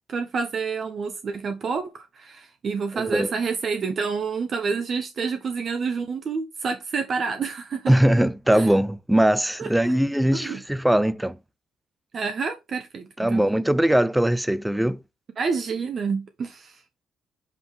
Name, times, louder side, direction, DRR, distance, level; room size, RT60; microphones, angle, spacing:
voice 1, 0.1-7.9 8.5-8.7 9.6-9.9 10.3-10.6 12.1-13.5 15.4-16.8, right 5 dB, 50° right, 1.2 m, -28 dB
voice 2, 2.9-3.3 7.9-11.4 13.2-15.0, right 1 dB, 5° right, 0.5 m, -21 dB
8.0 x 3.8 x 3.4 m
cardioid pair, 90°, 0 cm